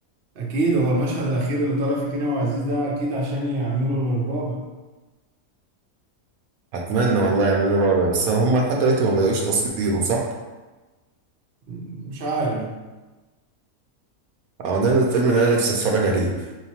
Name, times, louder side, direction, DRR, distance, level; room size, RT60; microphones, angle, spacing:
voice 1, 0.4-4.7 11.7-12.8, right 1 dB, 50° right, -1 dB, 0.7 m, -24 dB
voice 2, 6.7-10.3 14.6-16.3, right 3 dB, 80° right, 0 dB, 1.0 m, -20 dB
4.5 x 2.8 x 2.9 m, 1.2 s
omnidirectional pair, 1.6 m